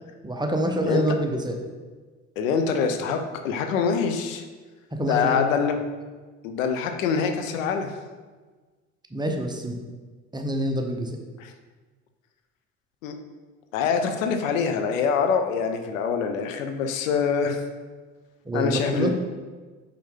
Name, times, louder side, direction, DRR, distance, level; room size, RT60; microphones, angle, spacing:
voice 1, 0.2-1.6 4.9-5.5 9.1-9.8 10.3-11.2 18.4-19.1, right 1 dB, 10° right, 3 dB, 0.8 m, -26 dB
voice 2, 2.4-4.4 5.1-5.8 6.4-7.9 13.0-13.2 13.7-17.6 18.5-19.1, left 6 dB, 80° left, 6 dB, 0.7 m, -25 dB
5.5 x 5.0 x 3.7 m, 1.4 s
hypercardioid pair, 65°, 40 cm